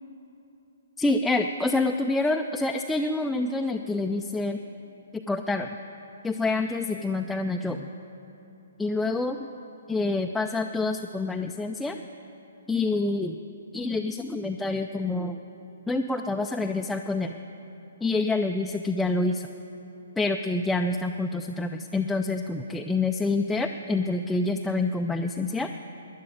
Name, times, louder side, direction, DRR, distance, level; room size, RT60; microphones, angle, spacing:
voice 1, 1.0-4.6 5.1-5.7 6.2-7.9 8.8-9.4 9.9-12.0 12.7-13.4 13.7-15.4 15.9-17.4 18.0-19.5 20.2-25.7, left 2 dB, 5° left, 3 dB, 0.4 m, -27 dB
12.5 x 10.0 x 9.0 m, 3.0 s
figure-of-eight pair, 130°, 0 cm